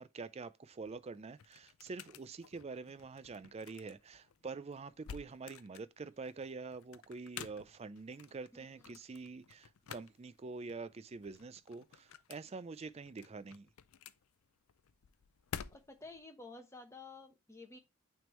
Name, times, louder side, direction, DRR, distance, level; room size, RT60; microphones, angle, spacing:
voice 1, 0.0-13.7, right 4 dB, 30° right, 0.4 m, -46 dB
sound 1, 0.7-16.2, left 8 dB, 70° left, 0.5 m, -52 dB
voice 2, 8.5-9.0 15.7-17.8, left 3 dB, 15° left, 1.0 m, -52 dB
9.1 x 3.5 x 3.1 m
head